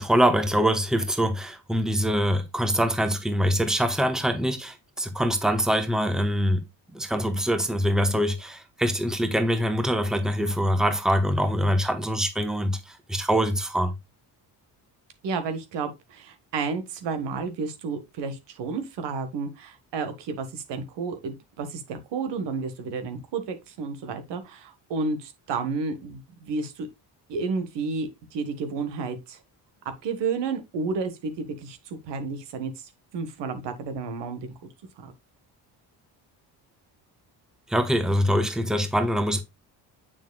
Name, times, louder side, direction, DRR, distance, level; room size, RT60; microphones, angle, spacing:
voice 1, 0.0-6.6 6.9-13.9 37.7-39.4, equal, ahead, 1.1 m, -24 dB
voice 2, 15.2-26.9 27.3-29.4 30.0-32.7 33.1-34.5 35.0-35.1, right 4 dB, 90° right, 1.6 m, -31 dB
7.1 x 6.0 x 2.3 m
cardioid pair, 120°, 41 cm